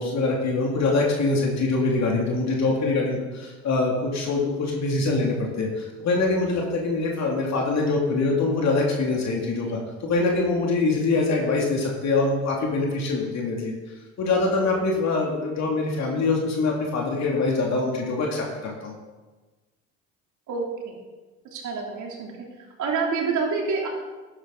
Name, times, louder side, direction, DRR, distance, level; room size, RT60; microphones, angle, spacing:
voice 1, 0.0-13.7 14.2-18.9, left 3 dB, 50° left, -1 dB, 2.7 m, -24 dB
voice 2, 20.5-20.9 21.5-22.3 22.8-23.9, right 4 dB, 60° right, -1 dB, 3.4 m, -27 dB
12.0 x 9.7 x 4.0 m, 1.2 s
hypercardioid pair, 70°, 34 cm